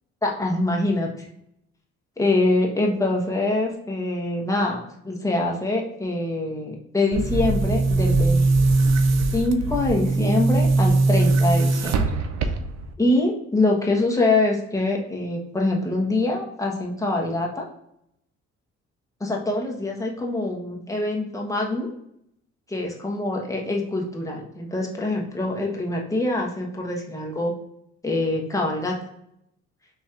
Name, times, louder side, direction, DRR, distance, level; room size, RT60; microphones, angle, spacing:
voice 1, 0.2-1.3 2.2-8.4 9.3-12.0 13.0-17.7 19.2-21.9 22.7-27.5 28.0-29.0, left 2 dB, 10° left, -1 dB, 1.1 m, -24 dB
Boom, 7.1-12.9, right 3 dB, 60° right, 0.6 m, -21 dB
4.3 x 3.0 x 2.4 m, 0.75 s
cardioid pair, 90°, 30 cm